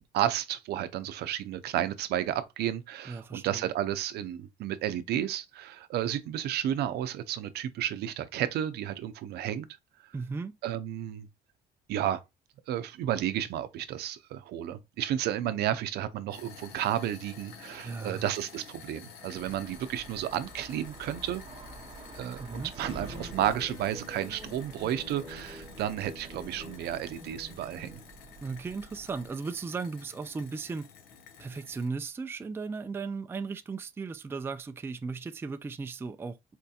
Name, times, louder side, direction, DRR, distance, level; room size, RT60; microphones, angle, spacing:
voice 1, 0.1-9.7 10.6-11.3 11.9-12.2 12.7-21.4 22.1-28.0, right 11 dB, 70° right, 0.6 m, -32 dB
voice 2, 3.1-3.6 10.1-10.6 17.8-18.2 22.4-22.7 28.4-30.9 31.4-36.4, right 4 dB, 15° right, 0.3 m, -36 dB
sound 1, 16.3-31.9, left 6 dB, 70° left, 0.8 m, -51 dB
sound 2, 19.3-29.3, right 3 dB, 30° right, 0.8 m, -48 dB
sound 3, 22.8-28.0, left 2 dB, 20° left, 1.2 m, -48 dB
4.3 x 2.7 x 2.3 m
cardioid pair, 110°, 17 cm